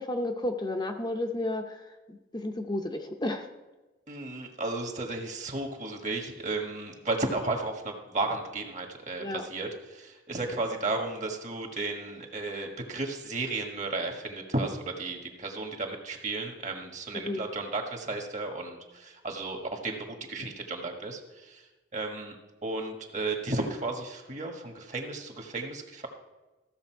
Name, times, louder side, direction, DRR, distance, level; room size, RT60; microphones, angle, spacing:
voice 1, 0.0-3.5 9.2-9.4 17.1-17.4, left 1 dB, 25° left, 5 dB, 0.7 m, -32 dB
voice 2, 4.1-22.4 22.6-26.1, right 2 dB, 40° right, 3 dB, 1.5 m, -34 dB
14.5 x 6.8 x 4.6 m, 1.1 s
head